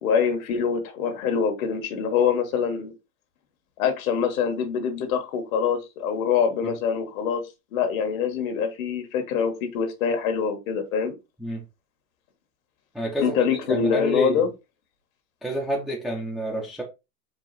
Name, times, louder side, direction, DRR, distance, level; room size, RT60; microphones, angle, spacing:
voice 1, 0.0-2.9 3.8-7.4 7.7-11.1 13.2-14.5, left 6 dB, 60° left, 1.4 m, -24 dB
voice 2, 12.9-14.4 15.4-16.8, equal, ahead, 0.5 m, -28 dB
4.7 x 2.4 x 3.9 m
hypercardioid pair, 130°, 46 cm